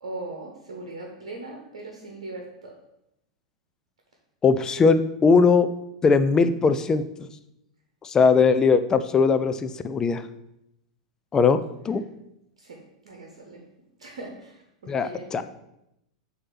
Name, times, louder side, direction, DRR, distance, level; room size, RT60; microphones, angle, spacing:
voice 1, 0.0-2.7 12.6-12.8 13.0-13.6 14.0-15.4, right 2 dB, 60° right, 0 dB, 1.2 m, -39 dB
voice 2, 4.4-5.7 6.0-7.0 8.0-10.2 11.3-12.0 14.9-15.4, left 5 dB, 20° left, 11 dB, 0.4 m, -20 dB
7.7 x 2.8 x 5.7 m, 0.83 s
figure-of-eight pair, 90°, 3 cm